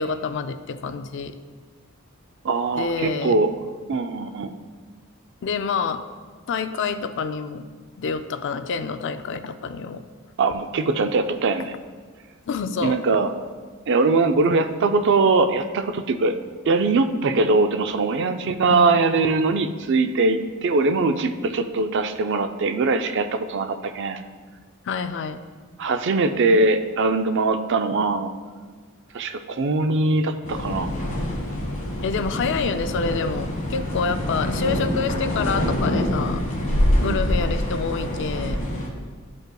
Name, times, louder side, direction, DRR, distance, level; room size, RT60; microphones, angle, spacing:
voice 1, 0.0-1.4 2.7-3.3 5.4-6.0 6.5-7.7 8.0-10.0 12.5-13.0 18.7-19.0 24.9-25.4 32.0-36.4 37.0-38.6, left 5 dB, 55° left, 10 dB, 0.4 m, -27 dB
voice 2, 2.4-3.5 3.9-4.5 10.4-11.7 12.8-13.3 13.9-16.3 16.7-24.2 25.8-28.3 29.1-30.9 37.0-37.2, right 3 dB, 55° right, 8 dB, 0.4 m, -21 dB
sound 1, 30.4-38.9, equal, 35° left, 1.4 m, -25 dB
12.5 x 5.3 x 2.3 m, 1.5 s
head